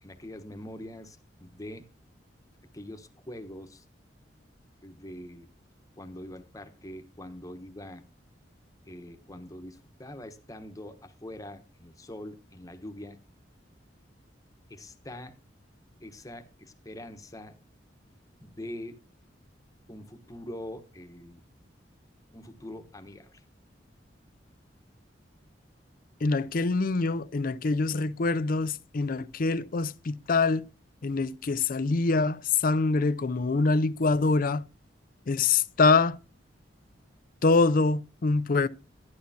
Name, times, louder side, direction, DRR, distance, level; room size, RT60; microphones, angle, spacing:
voice 1, 0.0-1.9 2.7-3.8 4.8-5.5 6.0-8.0 8.9-13.2 14.7-15.4 16.0-17.6 18.4-19.0 19.9-21.4 22.3-23.4, left 1 dB, 20° left, 1.1 m, -43 dB
voice 2, 26.2-30.7 31.0-34.6 35.3-36.2 37.4-38.7, left 3 dB, 50° left, 0.5 m, -25 dB
11.5 x 11.5 x 2.8 m
head